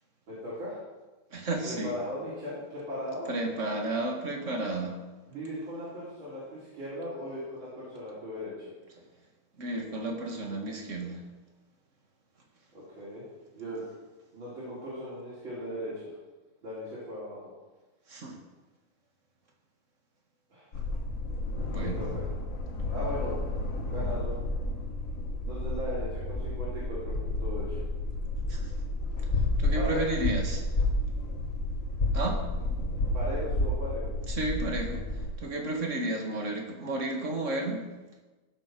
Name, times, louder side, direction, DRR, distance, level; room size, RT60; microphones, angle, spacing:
voice 1, 0.3-0.8 1.6-3.3 5.3-8.7 12.7-13.2 13.5-13.9 14.3-15.9 16.6-17.5 20.5-20.6 21.8-22.3 22.9-23.4 23.9-24.4 25.4-27.8 29.7-30.0 33.1-34.1, left 1 dB, 80° right, -9 dB, 4.7 m, -37 dB
voice 2, 1.3-1.9 3.3-5.0 9.6-11.2 18.1-18.4 21.6-22.0 28.5-28.7 29.6-30.6 32.1-32.4 34.3-35.0 35.4-37.8, right 2 dB, 40° right, 2 dB, 2.2 m, -32 dB
sound 1, 20.7-35.3, left 2 dB, 45° left, 1.8 m, -31 dB
15.5 x 7.1 x 6.3 m, 1.2 s
omnidirectional pair, 2.1 m